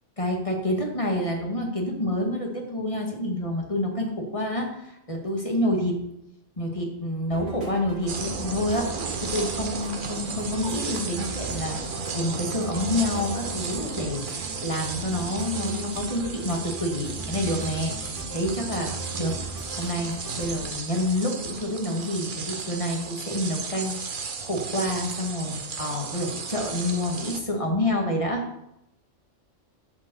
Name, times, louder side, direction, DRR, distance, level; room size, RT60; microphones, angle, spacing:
voice 1, 0.2-6.0 6.6-18.9 19.2-19.4 19.8-28.4, left 1 dB, 25° left, 1 dB, 2.1 m, -28 dB
sound 1, 7.3-20.7, right 2 dB, 85° right, 2.6 m, -38 dB
sound 2, 8.1-27.4, right 5 dB, 50° right, 1.0 m, -34 dB
11.0 x 5.6 x 7.8 m, 0.83 s
omnidirectional pair, 1.2 m